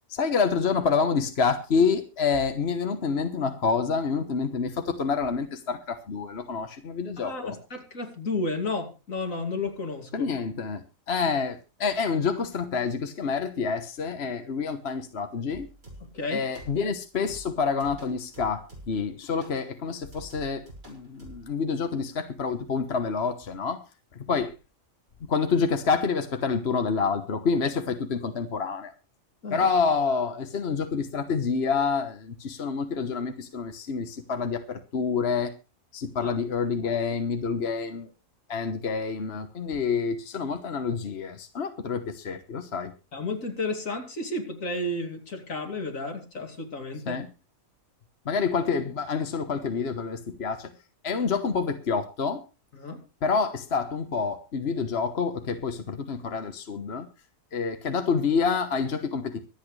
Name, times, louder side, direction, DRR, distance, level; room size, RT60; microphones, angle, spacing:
voice 1, 0.1-7.5 10.1-15.7 16.3-23.8 24.1-24.5 25.3-28.9 29.5-35.5 35.9-38.1 38.5-42.9 47.1-47.3 48.2-50.7 51.0-52.4 53.2-57.1 57.5-59.4, left 5 dB, 50° left, 7 dB, 1.4 m, -28 dB
voice 2, 7.2-10.3 16.1-16.4 29.4-29.7 36.2-36.4 43.1-47.2 52.7-53.0, left 2 dB, 75° left, 4 dB, 3.1 m, -32 dB
sound 1, 15.5-16.2 16.6-17.0 17.3-19.1 19.4-19.6 20.1-21.5, right 1 dB, 80° right, 6.2 m, -47 dB
24.5 x 8.6 x 3.3 m, 0.30 s
omnidirectional pair, 1.4 m